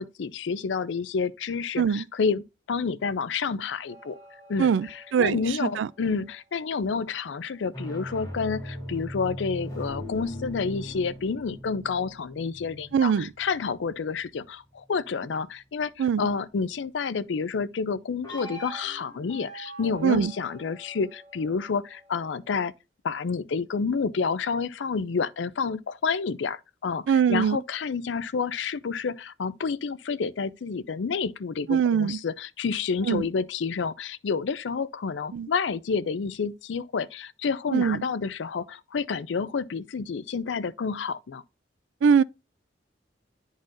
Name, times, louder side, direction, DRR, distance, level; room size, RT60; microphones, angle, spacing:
voice 1, 0.0-4.2 4.5-15.9 16.2-22.7 23.0-41.4, left 5 dB, 75° left, 0.4 m, -29 dB
sound 1, 3.9-6.5 7.6-14.4 18.2-22.5, equal, 20° left, 4.0 m, -41 dB
voice 2, 4.6-5.9 12.9-13.3 16.0-16.2 20.0-20.3 27.1-27.6 31.7-32.2 33.1-33.3 35.3-35.5 37.7-38.1 42.0-42.2, right 7 dB, 75° right, 0.3 m, -22 dB
10.5 x 4.0 x 2.5 m
head